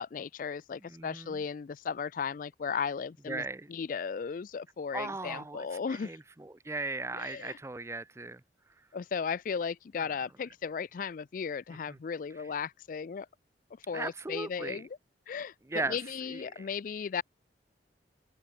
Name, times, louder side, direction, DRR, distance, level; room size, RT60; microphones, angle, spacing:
voice 1, 0.0-3.4 3.7-6.1 7.1-7.6 8.9-13.3 13.9-14.9 15.3-15.5 15.9-17.2, left 6 dB, 50° left, 0.3 m, -36 dB
voice 2, 0.8-1.4 3.3-3.7 4.9-8.4 10.0-10.1 11.9-12.0 13.9-14.8 15.7-16.0 16.3-16.7, right 3 dB, 15° right, 0.5 m, -38 dB
open air
head